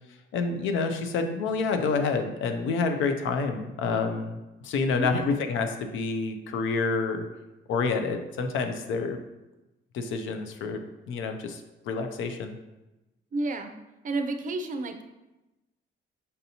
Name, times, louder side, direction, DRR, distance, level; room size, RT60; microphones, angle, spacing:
voice 1, 0.3-7.3 7.7-9.2 9.9-12.6, left 4 dB, 80° left, 6 dB, 0.5 m, -28 dB
voice 2, 5.0-5.4 13.3-13.7 14.0-15.0, right 2 dB, 40° right, 7 dB, 0.4 m, -31 dB
5.3 x 2.6 x 2.8 m, 1.0 s
cardioid pair, 90°, 20 cm